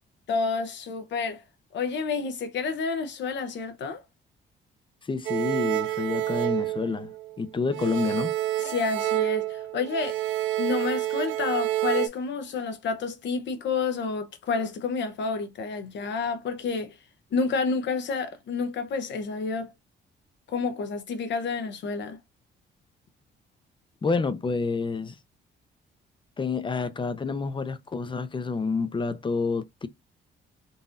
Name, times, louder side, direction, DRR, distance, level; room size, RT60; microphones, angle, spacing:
voice 1, 0.3-1.4 1.7-4.0 8.6-10.2 10.6-17.0 17.3-19.7 20.5-22.2, left 4 dB, 65° left, 0.7 m, -29 dB
voice 2, 5.0-8.3 24.0-25.2 26.4-29.9, left 4 dB, 25° left, 0.6 m, -28 dB
sound 1, 5.3-7.4 7.7-12.1, right 15 dB, 75° right, 0.4 m, -28 dB
3.9 x 2.6 x 2.5 m
cardioid pair, 90°, 20 cm